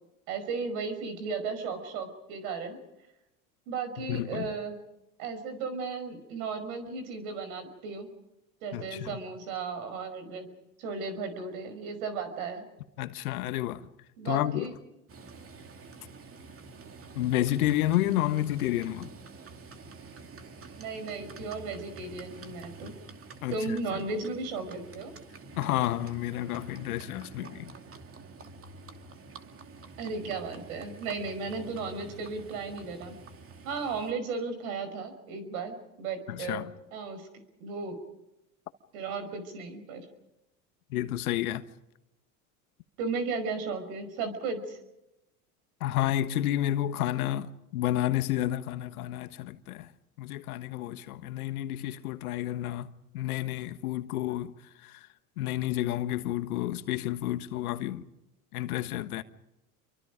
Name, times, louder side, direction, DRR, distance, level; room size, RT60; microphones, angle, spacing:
voice 1, 0.3-2.8 3.7-4.8 5.2-8.1 8.6-10.5 10.8-12.7 14.2-14.8 20.8-22.9 23.5-25.1 30.0-33.2 33.6-37.3 37.6-38.0 38.9-40.1 43.0-44.8, right 4 dB, 70° right, 5.6 m, -35 dB
voice 2, 4.0-4.5 8.7-9.2 13.0-13.9 14.2-14.7 17.1-19.1 23.4-23.8 25.5-27.7 36.3-36.7 40.9-41.6 45.8-49.9 50.2-54.5 54.8-55.1 55.4-58.0 58.5-59.2, left 13 dB, 75° left, 1.5 m, -30 dB
Livestock farm animals working animals, 15.1-34.1, right 3 dB, 30° right, 2.6 m, -48 dB
28.5 x 24.0 x 5.1 m
hypercardioid pair, 85°, 44 cm